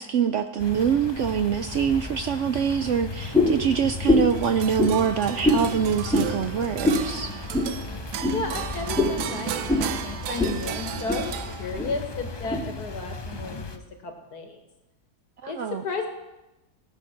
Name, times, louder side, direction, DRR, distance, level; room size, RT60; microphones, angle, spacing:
voice 1, 0.0-7.3 15.4-15.8, right 7 dB, 70° right, 9 dB, 0.7 m, -25 dB
sound 1, 0.6-13.8, left 3 dB, 40° left, 0.3 m, -36 dB
sound 2, 3.3-3.6 4.0-4.4 4.8-4.9 5.4-5.6 6.1-6.3 6.8-7.0 7.5-7.7 8.2-8.4 8.9-9.2 9.7-9.9 10.4-10.6 10.9-11.2 11.7-11.9 12.5-12.6, left 2 dB, ahead, 2.2 m, -22 dB
sound 3, 4.3-12.0, right 9 dB, 90° right, 1.3 m, -35 dB
voice 2, 8.3-11.3 11.6-14.6 15.5-15.6 15.8-16.1, left 4 dB, 75° left, 4 dB, 2.2 m, -33 dB
18.0 x 7.1 x 5.9 m, 0.99 s
omnidirectional pair, 1.7 m